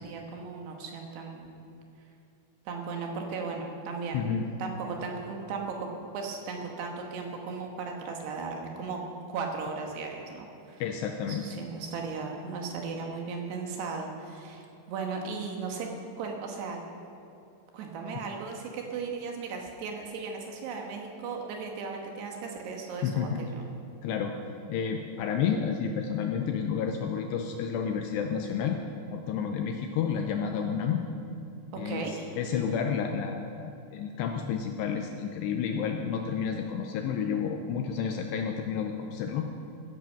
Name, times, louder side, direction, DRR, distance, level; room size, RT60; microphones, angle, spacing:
voice 1, 0.0-1.5 2.7-4.3 4.6-5.9 6.1-9.0 9.3-10.8 11.2-15.9 16.2-16.8 17.7-23.6 31.7-32.4, right 4 dB, 70° right, 2 dB, 2.9 m, -36 dB
voice 2, 4.1-4.5 10.8-11.5 23.0-23.4 24.0-24.3 24.7-28.8 29.1-31.0 31.8-39.5, left 7 dB, 90° left, 3 dB, 2.5 m, -30 dB
13.0 x 10.5 x 7.1 m, 2.7 s
omnidirectional pair, 5.6 m